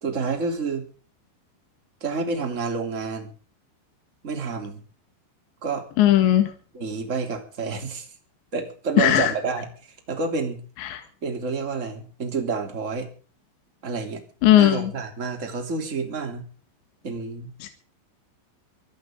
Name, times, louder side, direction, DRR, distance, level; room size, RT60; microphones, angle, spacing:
voice 1, 0.0-0.9 2.0-3.3 4.2-4.8 5.6-5.9 6.7-8.1 8.5-9.7 10.1-10.6 11.2-13.1 13.8-14.2 14.5-16.4 17.0-17.5, right 4 dB, 20° right, 4 dB, 2.9 m, -29 dB
voice 2, 6.0-6.5 9.0-9.3 10.8-11.0 14.4-14.9 17.6-17.7, left 13 dB, 70° left, 7 dB, 3.9 m, -17 dB
24.5 x 13.0 x 3.8 m, 0.39 s
omnidirectional pair, 5.4 m